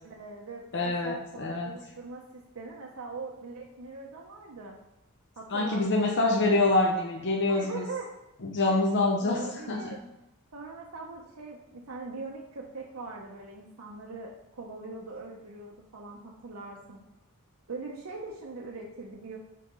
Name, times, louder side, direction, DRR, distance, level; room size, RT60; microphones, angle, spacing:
voice 1, 0.0-4.7 5.4-6.1 7.5-8.1 8.6-8.8 9.2-10.0 10.5-17.0 17.7-19.4, right 3 dB, 75° right, -1 dB, 0.8 m, -41 dB
voice 2, 0.7-1.7 5.5-7.8 8.4-9.8, left 2 dB, 55° left, 0 dB, 0.8 m, -26 dB
5.7 x 4.9 x 3.7 m, 0.92 s
head